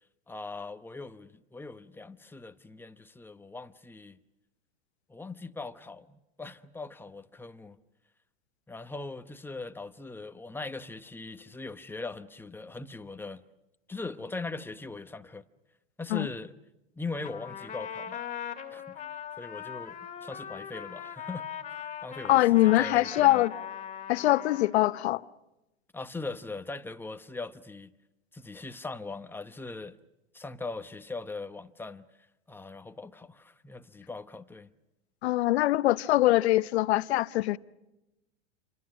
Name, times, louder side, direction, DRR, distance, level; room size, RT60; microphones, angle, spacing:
voice 1, 0.3-4.2 5.1-7.8 8.7-13.4 13.9-15.5 16.0-16.5 16.9-18.2 18.7-19.0 19.4-23.4 25.9-27.9 28.3-30.0 30.3-32.1 32.5-34.7, left 3 dB, 5° left, 0.9 m, -40 dB
Trumpet, 17.2-25.1, left 8 dB, 20° left, 2.3 m, -40 dB
voice 2, 22.3-23.5 24.1-25.2 35.2-37.6, left 16 dB, 70° left, 0.9 m, -23 dB
28.5 x 25.0 x 6.3 m
hypercardioid pair, 120°, 33 cm